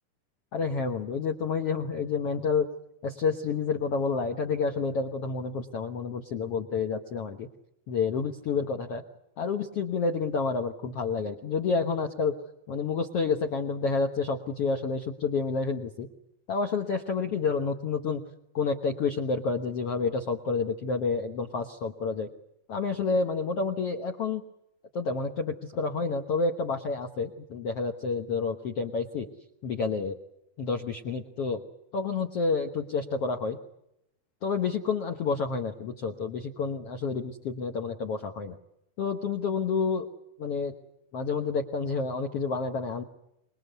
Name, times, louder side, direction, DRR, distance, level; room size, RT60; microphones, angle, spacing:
voice 1, 0.5-2.7 3.0-7.5 7.9-9.0 9.4-12.4 12.7-16.1 16.5-18.2 18.5-22.3 22.7-24.4 24.9-29.3 29.6-30.2 30.6-31.6 31.9-33.6 34.4-38.6 39.0-40.1 40.4-40.7 41.1-43.0, left 4 dB, 70° left, 4 dB, 1.5 m, -29 dB
26.0 x 21.0 x 8.1 m, 0.83 s
omnidirectional pair, 4.7 m